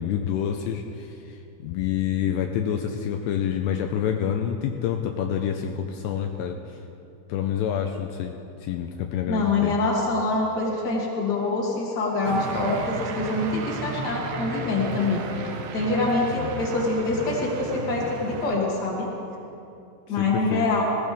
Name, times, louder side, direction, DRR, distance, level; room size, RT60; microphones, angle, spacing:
voice 1, 0.0-6.6 7.3-8.3 8.6-9.8 16.4-16.6 20.1-20.7, left 9 dB, 85° left, 4 dB, 2.6 m, -28 dB
voice 2, 9.3-19.1 20.1-20.8, left 3 dB, 30° left, -4 dB, 2.3 m, -25 dB
sound 1, 12.2-18.6, right 4 dB, 75° right, 3.0 m, -34 dB
Guitar, 13.7-13.8 14.3-18.4, left 2 dB, 55° left, 3.2 m, -41 dB
19.0 x 17.5 x 3.6 m, 2.8 s
omnidirectional pair, 5.5 m